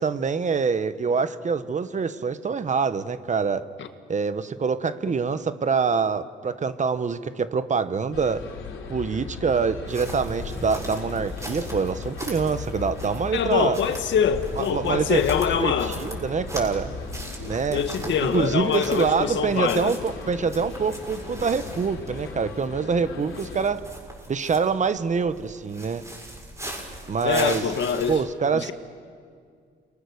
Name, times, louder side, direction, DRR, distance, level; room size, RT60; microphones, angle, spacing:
voice 1, 0.0-3.7 4.1-8.4 8.9-13.8 14.6-15.2 15.6-16.9 17.5-23.8 24.3-26.0 27.1-27.7 28.1-28.7, right 5 dB, 40° right, 1.1 m, -25 dB
sound 1, 8.1-23.7, left 5 dB, 85° left, 3.9 m, -37 dB
sound 2, 9.9-28.2, right 1 dB, 15° right, 6.7 m, -39 dB
voice 2, 13.3-16.0 17.7-19.9 27.2-28.2, left 7 dB, 70° left, 1.8 m, -24 dB
29.5 x 23.0 x 6.6 m
cardioid pair, 90°, 20 cm